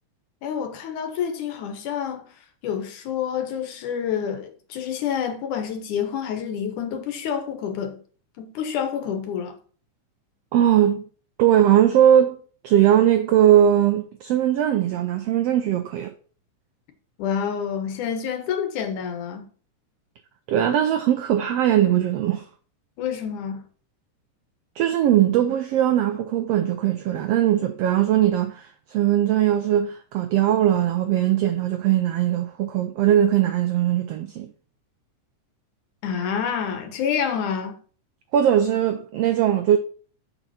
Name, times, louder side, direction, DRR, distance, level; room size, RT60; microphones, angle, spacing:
voice 1, 0.4-2.3 2.6-8.0 8.4-9.6 17.2-19.4 23.0-23.6 36.0-37.8, left 8 dB, 75° left, 2.6 m, -28 dB
voice 2, 10.5-11.0 11.4-12.4 12.6-16.1 20.5-22.5 24.8-34.5 38.3-39.8, right 11 dB, 85° right, 1.4 m, -20 dB
7.1 x 5.6 x 5.7 m
omnidirectional pair, 3.6 m